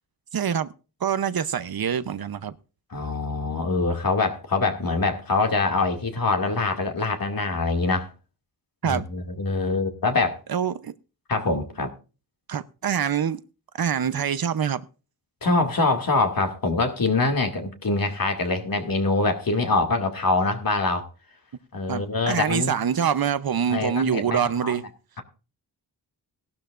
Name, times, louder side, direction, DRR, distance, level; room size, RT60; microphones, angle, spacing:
voice 1, 0.3-0.7 1.0-2.5 8.8-9.0 10.5-10.9 12.5-13.4 13.8-14.8 21.9-24.8, right 8 dB, 60° right, 0.8 m, -25 dB
voice 2, 2.9-8.1 8.8-10.4 11.3-11.9 15.4-21.1 21.7-22.7 23.7-24.8, left 3 dB, 55° left, 2.3 m, -24 dB
17.0 x 12.0 x 2.5 m
wide cardioid pair, 80°, 41 cm